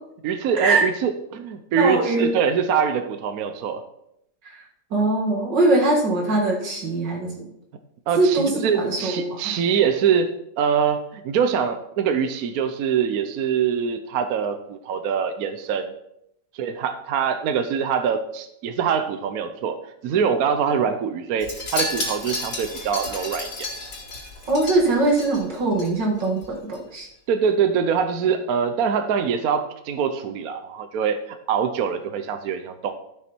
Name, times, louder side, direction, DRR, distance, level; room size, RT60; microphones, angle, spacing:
voice 1, 0.2-3.8 8.1-15.9 16.5-19.8 20.0-23.7 27.3-32.9, right 7 dB, 65° right, 9 dB, 1.1 m, -24 dB
voice 2, 1.8-2.3 4.4-4.6 4.9-7.4 8.2-9.5 24.5-27.1, right 2 dB, 80° right, 0 dB, 2.7 m, -22 dB
Wind chime, 21.4-25.9 26.2-26.5 26.7-26.8, left 2 dB, 75° left, 3.3 m, -32 dB
12.5 x 6.2 x 4.4 m, 0.78 s
omnidirectional pair, 1.9 m